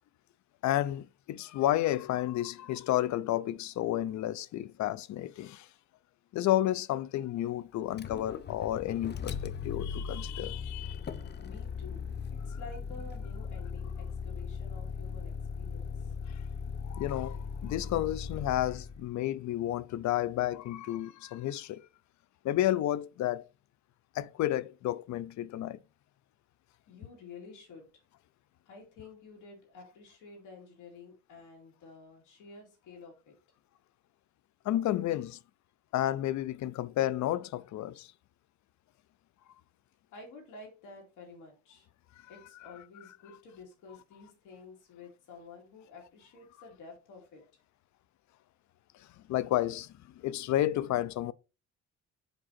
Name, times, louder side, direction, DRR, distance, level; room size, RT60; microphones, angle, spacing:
voice 1, 0.6-5.7 6.3-11.0 16.9-21.9 22.4-23.5 24.1-25.8 34.6-35.4 35.9-38.1 49.3-51.3, left 13 dB, 70° left, 0.5 m, -31 dB
Motor vehicle (road), 7.9-19.1, left 6 dB, 35° left, 0.7 m, -38 dB
voice 2, 11.4-12.1 12.4-16.1 26.9-27.9 28.7-33.3 40.1-41.9 42.3-47.4, left 4 dB, 85° left, 2.8 m, -50 dB
5.1 x 4.8 x 4.1 m
cardioid pair, 90°, 30 cm